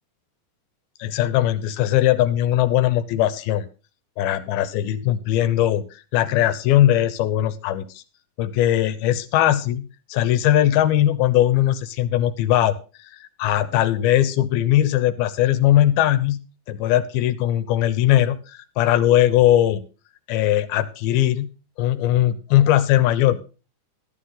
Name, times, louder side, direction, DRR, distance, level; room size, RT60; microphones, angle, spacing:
voice 1, 1.0-3.7 4.2-5.8 6.1-8.0 8.4-12.8 13.2-16.4 16.7-19.8 20.3-21.5 21.8-23.4, left 12 dB, 80° left, 12 dB, 2.6 m, -19 dB
12.0 x 11.5 x 3.8 m, 0.33 s
omnidirectional pair, 4.4 m